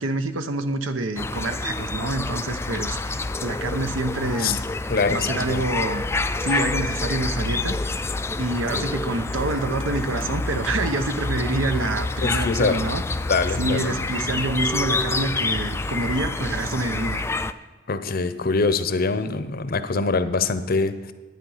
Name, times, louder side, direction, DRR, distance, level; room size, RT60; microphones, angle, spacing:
voice 1, 0.0-4.6 5.1-6.1 6.4-8.1 8.4-13.0 13.6-17.2, right 2 dB, 85° right, 9 dB, 0.8 m, -27 dB
sound 1, 1.2-17.5, left 3 dB, 15° left, 0.3 m, -27 dB
voice 2, 4.9-5.6 8.5-8.9 12.2-12.8 13.3-14.0 17.9-21.1, left 4 dB, 50° left, 11 dB, 0.7 m, -24 dB
11.0 x 9.0 x 5.6 m, 1.3 s
head